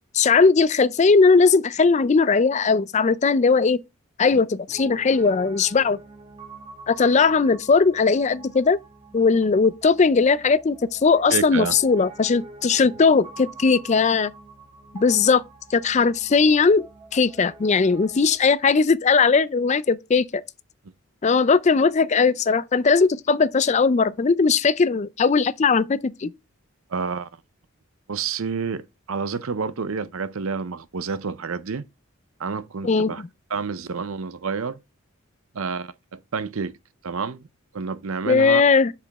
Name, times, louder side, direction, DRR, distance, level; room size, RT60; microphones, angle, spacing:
voice 1, 0.1-3.8 4.2-6.0 6.9-8.8 9.1-14.3 14.9-15.4 15.7-16.8 17.1-20.4 21.2-26.3 32.8-33.1 38.3-38.9, left 4 dB, 30° left, 0.4 m, -19 dB
Piano, 4.7-18.4, right 3 dB, 20° right, 1.3 m, -45 dB
voice 2, 11.3-11.8 26.9-27.3 28.1-31.9 32.4-33.2 33.5-34.8 35.5-36.7 37.0-37.5 37.7-38.6, right 5 dB, 70° right, 0.6 m, -29 dB
6.9 x 5.0 x 3.5 m
head